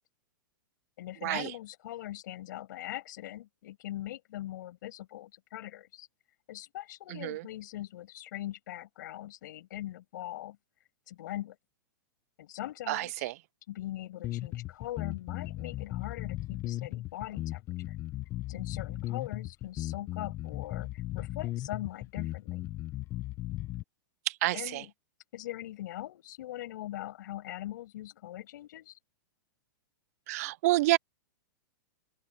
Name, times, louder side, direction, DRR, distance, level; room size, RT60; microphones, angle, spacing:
voice 1, 1.0-6.1 6.5-10.6 11.1-11.6 12.4-13.3 13.7-18.0 18.5-22.6 24.5-24.9 25.3-29.0, left 14 dB, 60° left, 6.6 m, -41 dB
voice 2, 7.1-7.4 12.9-13.3 24.3-24.8 30.3-31.0, right 19 dB, 45° right, 0.4 m, -28 dB
sound 1, 14.2-23.8, left 16 dB, 25° left, 0.7 m, -36 dB
open air
supercardioid pair, 160°, 11 cm